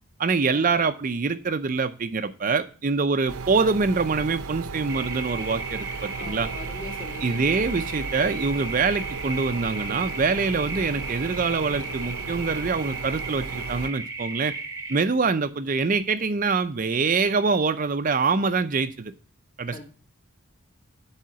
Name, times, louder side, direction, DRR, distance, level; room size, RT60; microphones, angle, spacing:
voice 1, 0.2-6.5 7.2-14.5 14.9-19.1 19.6-19.8, right 4 dB, 40° right, 10 dB, 0.5 m, -25 dB
sound 1, 3.3-13.9, right 4 dB, 80° right, 0.7 m, -35 dB
sound 2, 4.9-15.0, right 3 dB, 15° right, 0.9 m, -36 dB
voice 2, 6.2-7.4 19.7-19.8, left 2 dB, 35° left, 0 dB, 1.9 m, -41 dB
7.5 x 4.9 x 6.6 m, 0.39 s
head